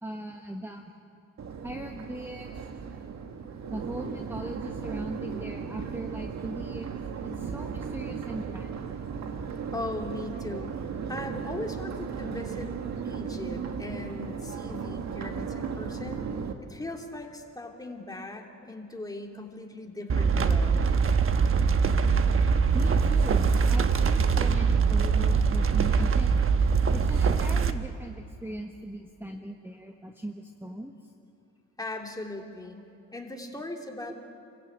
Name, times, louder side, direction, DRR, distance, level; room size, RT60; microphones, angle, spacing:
voice 1, 0.0-0.9 1.4-2.5 3.7-6.9 7.2-8.8 22.7-26.3 26.9-31.1 34.0-34.1, right 1 dB, 10° right, 3 dB, 1.4 m, -39 dB
Crowd, 1.4-16.5, right 6 dB, 60° right, 1.9 m, -36 dB
voice 2, 9.7-10.8 11.1-12.7 13.0-16.2 16.6-20.8 31.8-34.1, left 2 dB, 10° left, 1 dB, 3.1 m, -39 dB
sound 1, 20.1-27.7, right 5 dB, 45° right, 1.2 m, -23 dB
28.5 x 15.0 x 8.9 m, 2.5 s
cardioid pair, 90°, 30 cm